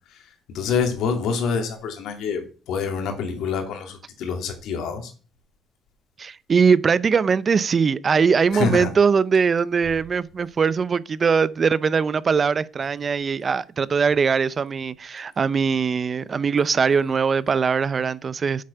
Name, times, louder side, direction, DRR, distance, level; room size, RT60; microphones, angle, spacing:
voice 1, 0.5-5.1 8.5-8.9, left 5 dB, 80° left, 2.9 m, -26 dB
voice 2, 6.2-18.6, right 5 dB, 40° right, 0.6 m, -21 dB
8.4 x 7.7 x 5.6 m
cardioid pair, 80°, 0 cm